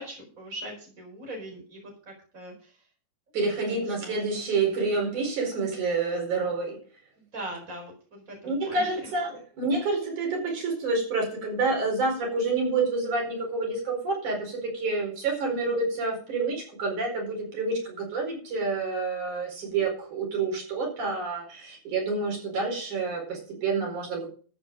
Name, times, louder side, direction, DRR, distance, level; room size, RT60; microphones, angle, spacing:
voice 1, 0.0-2.8 3.6-4.2 7.3-9.0 15.7-15.8, right 1 dB, 25° right, 1 dB, 5.1 m, -41 dB
voice 2, 3.3-6.8 8.4-24.2, right 3 dB, 85° right, 0 dB, 6.0 m, -28 dB
13.0 x 8.5 x 5.1 m, 0.41 s
omnidirectional pair, 3.4 m